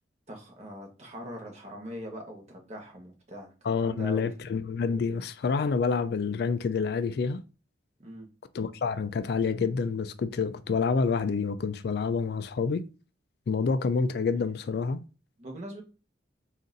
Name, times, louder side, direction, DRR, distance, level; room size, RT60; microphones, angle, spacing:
voice 1, 0.3-3.5 3.8-4.3 8.0-8.3 15.4-15.8, right 1 dB, 35° right, 1.1 m, -42 dB
voice 2, 3.6-7.4 8.5-12.8 13.5-15.0, left 5 dB, 55° left, 0.3 m, -28 dB
3.9 x 2.5 x 3.8 m
head